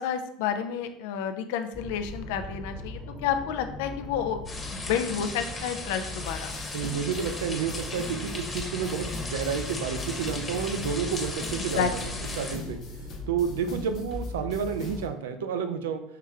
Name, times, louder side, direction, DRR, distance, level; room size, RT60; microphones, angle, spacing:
voice 1, 0.0-4.4 4.7-6.5 11.8-11.9, left 8 dB, 70° left, 8 dB, 0.4 m, -30 dB
sound 1, 1.7-15.1, left 1 dB, ahead, 0.9 m, -40 dB
sound 2, 4.5-12.6, left 3 dB, 25° left, 1.1 m, -37 dB
sound 3, 6.2-15.1, left 5 dB, 55° left, 0.9 m, -43 dB
voice 2, 6.7-11.9 12.3-12.8 13.3-16.0, right 7 dB, 80° right, 8 dB, 0.4 m, -30 dB
5.6 x 3.1 x 2.4 m, 0.71 s
hypercardioid pair, 75°, 0 cm